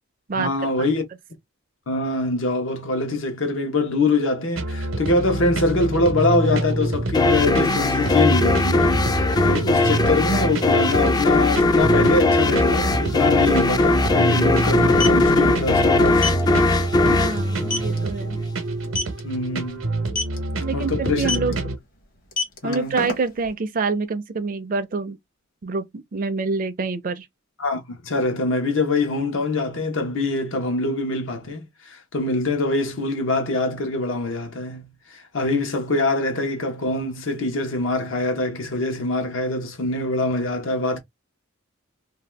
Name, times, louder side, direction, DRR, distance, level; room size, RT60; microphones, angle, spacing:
voice 1, 0.3-1.0 1.9-16.4 19.2-19.8 20.7-21.4 22.6-23.0 27.6-41.0, left 2 dB, 75° left, 0.9 m, -24 dB
sound 1, 4.6-21.8, right 2 dB, 80° right, 0.8 m, -27 dB
sound 2, 7.1-18.4, left 2 dB, 20° left, 0.3 m, -19 dB
sound 3, 14.8-15.2 16.2-16.4 16.8-17.0 17.4-17.5 17.7-18.0 18.8-19.2 20.1-20.4 21.2-21.5 22.2-23.5, left 3 dB, 45° left, 0.9 m, -26 dB
voice 2, 17.1-18.4 20.6-21.6 22.6-25.2 25.6-27.3, right 4 dB, 45° right, 0.4 m, -26 dB
2.7 x 2.2 x 3.2 m
head